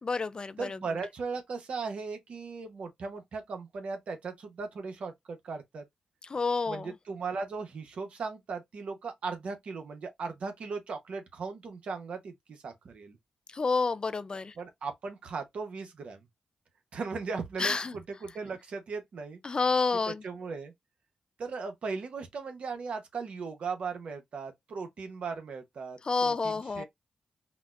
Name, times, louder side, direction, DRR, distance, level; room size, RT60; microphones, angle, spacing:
voice 1, 0.0-0.8 6.3-6.9 13.5-14.5 17.6-17.9 19.4-20.2 26.1-26.8, left 4 dB, 45° left, 0.4 m, -29 dB
voice 2, 0.6-5.8 6.7-13.2 14.6-16.3 16.9-19.4 20.1-20.7 21.4-26.8, right 4 dB, 75° right, 0.8 m, -38 dB
4.1 x 2.1 x 2.4 m
cardioid pair, 50°, 2 cm